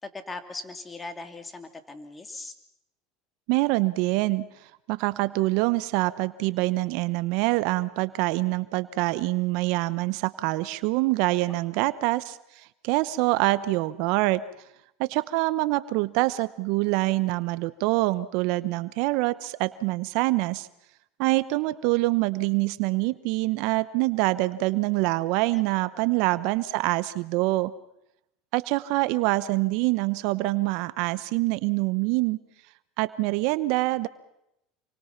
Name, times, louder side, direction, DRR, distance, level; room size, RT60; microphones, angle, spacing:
voice 1, 0.0-2.5 11.7-11.9 25.5-25.7 25.9-26.1, left 3 dB, 20° left, 8 dB, 2.8 m, -40 dB
voice 2, 3.5-4.5 4.9-12.4 12.8-14.4 15.0-20.7 21.2-27.7 28.5-32.4 33.0-34.1, right 20 dB, 65° right, 16 dB, 0.9 m, -25 dB
28.0 x 24.0 x 5.8 m, 0.84 s
hypercardioid pair, 95°, 0 cm